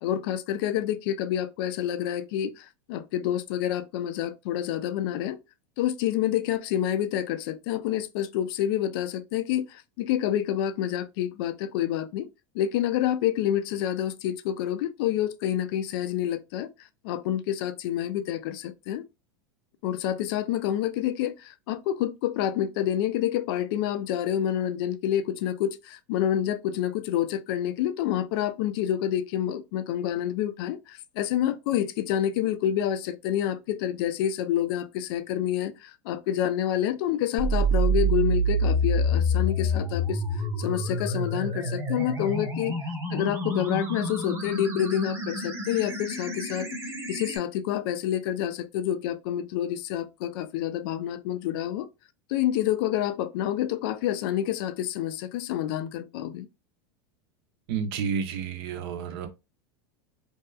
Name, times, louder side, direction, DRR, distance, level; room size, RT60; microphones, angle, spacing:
voice 1, 0.0-5.4 5.8-12.3 12.5-19.0 19.8-42.8 43.1-46.7 47.1-51.9 52.3-56.5, left 11 dB, 65° left, 0.4 m, -28 dB
sound 1, 37.4-47.4, right 1 dB, 20° right, 0.9 m, -27 dB
voice 2, 57.7-59.3, right 6 dB, 65° right, 0.5 m, -30 dB
2.7 x 2.2 x 2.2 m
supercardioid pair, 120°, 13 cm